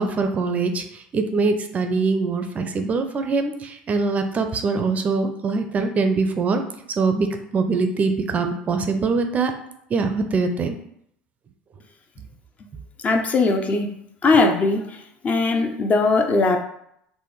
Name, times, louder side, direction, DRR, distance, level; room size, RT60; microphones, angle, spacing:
voice 1, 0.0-6.6 7.0-9.5 9.9-10.8, right 4 dB, 35° right, 6 dB, 0.4 m, -23 dB
voice 2, 13.0-13.9 14.2-15.0 15.2-16.6, left 3 dB, 30° left, 5 dB, 0.4 m, -19 dB
3.5 x 2.1 x 3.1 m, 0.73 s
hypercardioid pair, 85°, 5 cm